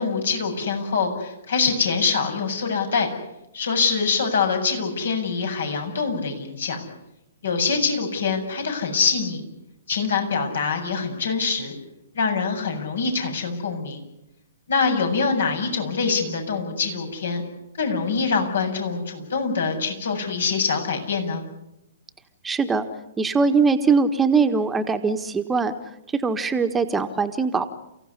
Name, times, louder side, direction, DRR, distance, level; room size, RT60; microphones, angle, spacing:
voice 1, 0.0-3.1 3.5-6.8 7.4-9.4 9.9-11.7 12.1-14.1 14.7-17.4 17.8-21.4, left 5 dB, 70° left, 5 dB, 7.7 m, -24 dB
voice 2, 22.4-22.9 23.2-25.7 26.1-27.7, right 4 dB, 10° right, 8 dB, 1.5 m, -21 dB
30.0 x 16.5 x 9.9 m, 0.87 s
figure-of-eight pair, 120°, 0 cm